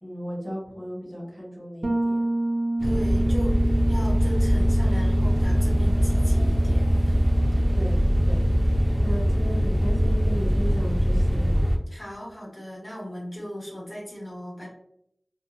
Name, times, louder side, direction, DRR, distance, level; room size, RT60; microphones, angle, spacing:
voice 1, 0.0-2.3 7.7-8.0 8.2-11.5, equal, 5° left, -7 dB, 1.4 m, -35 dB
Bass guitar, 1.8-11.5, right 2 dB, 80° right, 0.5 m, -31 dB
voice 2, 2.8-7.2 7.5-7.6 11.9-14.7, equal, 40° left, -5 dB, 1.3 m, -38 dB
sound 1, 2.8-11.8, equal, 25° right, 0.4 m, -22 dB
2.6 x 2.2 x 2.5 m, 0.71 s
wide cardioid pair, 55°, 0 cm